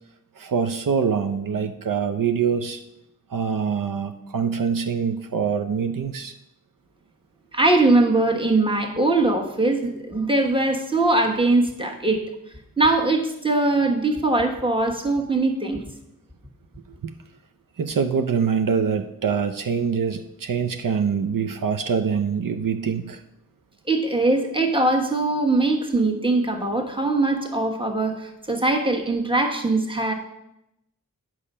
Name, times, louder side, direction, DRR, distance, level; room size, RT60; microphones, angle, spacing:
voice 1, 0.4-2.8 3.3-6.3 17.0-17.1 17.8-23.2, right 6 dB, 75° right, 7 dB, 0.6 m, -24 dB
voice 2, 7.5-12.2 12.8-15.8 23.9-30.1, right 2 dB, 15° right, 2 dB, 1.3 m, -21 dB
8.6 x 6.3 x 5.5 m, 0.84 s
wide cardioid pair, 85°, 33 cm